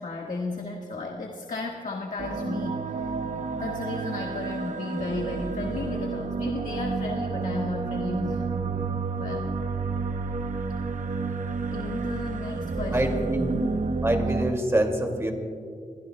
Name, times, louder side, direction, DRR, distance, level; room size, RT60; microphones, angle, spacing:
voice 1, 0.0-3.0 3.6-8.6 9.2-9.5 11.7-13.7, left 3 dB, 60° left, 0 dB, 1.5 m, -34 dB
sound 1, 2.2-14.5, right 4 dB, 60° right, 0.8 m, -30 dB
voice 2, 12.9-13.5 14.0-15.3, right 1 dB, 20° right, 3 dB, 2.2 m, -25 dB
29.0 x 22.0 x 2.2 m, 2.3 s
wide cardioid pair, 115°, 14 cm